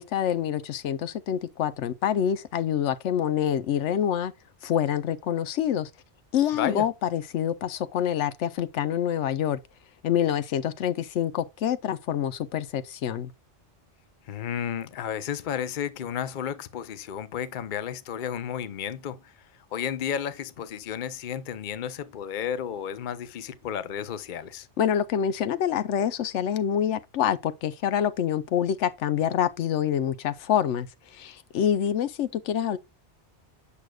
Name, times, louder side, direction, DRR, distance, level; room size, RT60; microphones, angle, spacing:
voice 1, 0.0-4.3 4.6-5.9 6.3-9.6 10.0-13.3 24.8-30.9 31.1-32.8, left 9 dB, 90° left, 1.0 m, -26 dB
voice 2, 6.5-6.9 14.3-19.3 19.7-24.7, left 9 dB, 50° left, 0.7 m, -32 dB
8.4 x 6.3 x 2.3 m
omnidirectional pair, 1.2 m